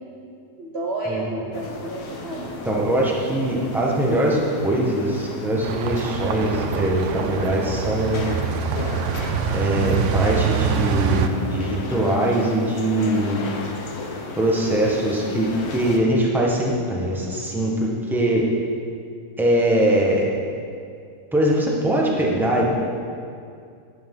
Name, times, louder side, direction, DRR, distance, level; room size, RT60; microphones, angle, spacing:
voice 1, 0.6-2.6, right 2 dB, 45° right, -2 dB, 0.9 m, -31 dB
sound 1, 1.5-16.0, left 3 dB, 60° left, 1.4 m, -34 dB
voice 2, 2.6-8.3 9.5-13.5 14.3-15.5 15.7-18.4 19.4-20.3 21.3-22.6, right 1 dB, ahead, -3 dB, 1.2 m, -22 dB
sound 2, 5.6-11.3, right 7 dB, 70° right, 0.7 m, -25 dB
11.5 x 10.0 x 3.9 m, 2.4 s
omnidirectional pair, 1.9 m